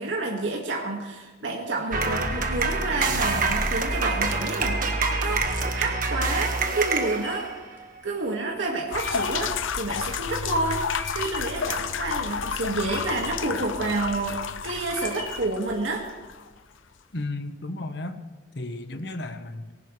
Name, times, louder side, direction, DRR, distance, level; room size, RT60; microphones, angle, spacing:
voice 1, 0.0-4.8 5.2-5.5 5.7-7.5 8.0-16.1, right 2 dB, 70° right, -1 dB, 1.9 m, -29 dB
sound 1, 1.9-7.8, right 3 dB, 45° right, 1.5 m, -26 dB
sound 2, 7.0-11.6 12.0-12.6 12.8-13.5 14.0-14.5 14.9-15.6, equal, 10° left, 2.4 m, -41 dB
sound 3, 8.9-16.5, left 6 dB, 85° left, 0.7 m, -31 dB
voice 2, 17.1-18.2 18.5-19.6, left 2 dB, 60° left, 8 dB, 1.2 m, -33 dB
19.5 x 17.5 x 3.3 m, 1.3 s
head